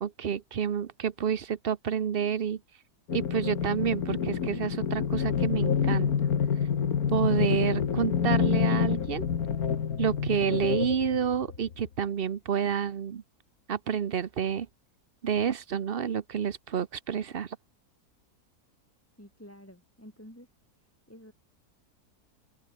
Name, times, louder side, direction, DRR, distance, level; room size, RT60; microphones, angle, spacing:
voice 1, 0.0-2.6 3.1-6.1 7.1-9.2 10.0-13.2 13.7-14.7 15.2-17.6, right 8 dB, 45° right, 0.8 m, -29 dB
sound 1, 3.1-11.8, left 7 dB, 65° left, 1.9 m, -28 dB
voice 2, 19.2-20.5 20.8-21.3, equal, 10° left, 5.0 m, -50 dB
open air
omnidirectional pair, 1.7 m